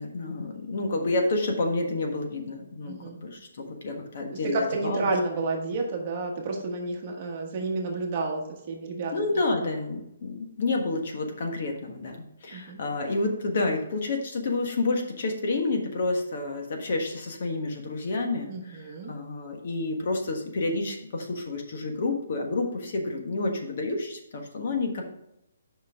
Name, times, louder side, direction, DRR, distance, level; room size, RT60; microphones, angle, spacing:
voice 1, 0.0-5.1 9.1-25.1, left 2 dB, 45° left, 2 dB, 1.4 m, -29 dB
voice 2, 2.9-3.2 4.5-9.1 12.5-12.8 18.5-19.1, right 3 dB, 30° right, 1 dB, 1.3 m, -30 dB
7.5 x 5.5 x 3.6 m, 0.84 s
hypercardioid pair, 170°, 0 cm